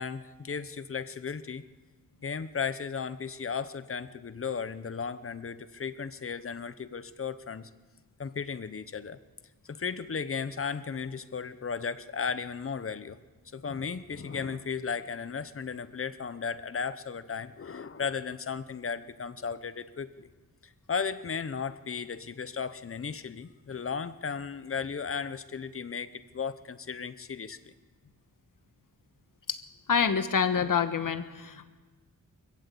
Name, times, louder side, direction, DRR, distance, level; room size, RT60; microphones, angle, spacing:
voice 1, 0.0-1.6 2.2-7.7 8.2-9.2 9.7-13.2 13.5-20.3 20.6-27.7 30.6-30.7, left 6 dB, 40° left, 14 dB, 0.9 m, -35 dB
voice 2, 29.9-31.7, left 6 dB, 70° left, 10 dB, 1.3 m, -27 dB
24.5 x 15.0 x 8.4 m, 1.3 s
wide cardioid pair, 155°, 33 cm